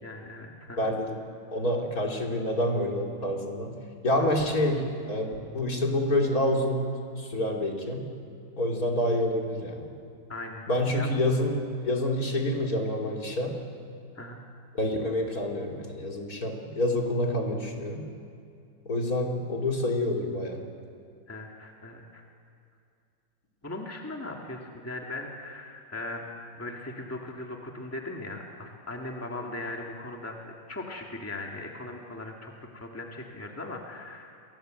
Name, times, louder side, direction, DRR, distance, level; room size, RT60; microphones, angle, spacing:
voice 1, 0.0-0.9 4.2-4.3 10.3-10.6 10.9-11.1 14.1-14.4 21.3-22.2 23.6-26.3 26.6-34.3, left 2 dB, 10° left, 0 dB, 2.4 m, -39 dB
voice 2, 0.8-1.2 1.5-3.7 4.0-6.8 7.2-8.0 8.6-9.9 10.7-13.6 14.7-18.1 18.9-20.6, left 1 dB, 50° left, 0 dB, 3.6 m, -27 dB
29.5 x 22.5 x 8.0 m, 2.4 s
omnidirectional pair, 2.0 m